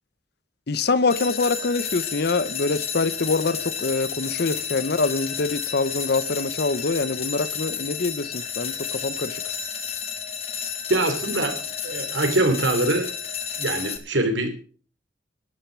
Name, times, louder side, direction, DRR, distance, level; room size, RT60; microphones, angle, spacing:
voice 1, 0.7-9.4, left 3 dB, 55° left, 0.8 m, -25 dB
sound 1, 1.1-14.0, left 7 dB, 35° left, 1.6 m, -31 dB
voice 2, 10.9-13.1 13.6-14.5, right 2 dB, 80° right, 3.0 m, -23 dB
12.0 x 10.0 x 6.2 m
head